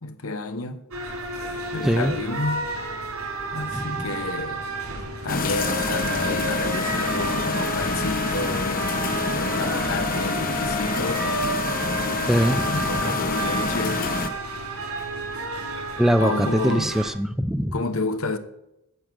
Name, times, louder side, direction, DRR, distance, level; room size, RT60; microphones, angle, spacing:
voice 1, 0.0-0.8 1.7-2.7 3.5-4.7 5.2-11.2 12.7-14.1 16.2-17.0 17.7-18.4, left 2 dB, 70° left, 1.1 m, -30 dB
sound 1, 0.9-17.1, right 3 dB, 75° right, 3.8 m, -31 dB
voice 2, 1.8-2.1 3.7-4.0 12.3-13.1 16.0-17.7, equal, ahead, 0.4 m, -23 dB
sound 2, 5.3-14.3, left 3 dB, 40° left, 1.1 m, -27 dB
10.0 x 7.6 x 7.4 m
head